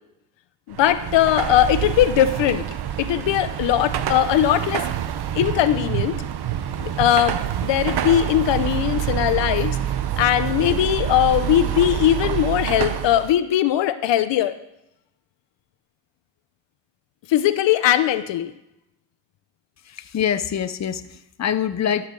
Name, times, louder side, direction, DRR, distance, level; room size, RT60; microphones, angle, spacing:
voice 1, 0.7-2.7 3.0-4.9 5.3-6.2 6.8-9.8 10.2-14.5 17.3-18.5, left 12 dB, 85° left, 12 dB, 0.8 m, -20 dB
Car passing by / Traffic noise roadway noise / Engine, 0.7-13.3, right 11 dB, 65° right, 0.9 m, -26 dB
voice 2, 19.8-22.1, left 9 dB, 40° left, 11 dB, 0.8 m, -25 dB
12.5 x 5.9 x 6.8 m, 0.87 s
cardioid pair, 85°, 42 cm